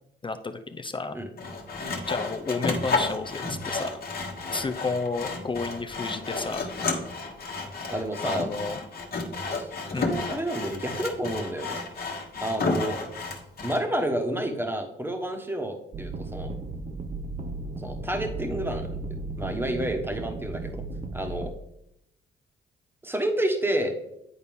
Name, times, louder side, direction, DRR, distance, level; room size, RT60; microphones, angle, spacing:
voice 1, 0.2-1.2 2.1-3.9 4.5-6.7 8.2-8.8 9.9-10.2, left 3 dB, 25° left, 8 dB, 0.5 m, -31 dB
Sawing, 1.4-13.8, left 3 dB, 45° left, 1.3 m, -32 dB
voice 2, 7.9-8.5 9.5-11.8 12.4-13.0 13.6-16.5 17.7-19.0 19.4-20.8 21.1-21.5 23.0-23.9, right 1 dB, 10° right, 4 dB, 1.3 m, -30 dB
sound 1, 15.9-21.5, right 3 dB, 30° right, 0.5 m, -35 dB
9.5 x 4.1 x 3.5 m, 0.79 s
cardioid pair, 80°, 21 cm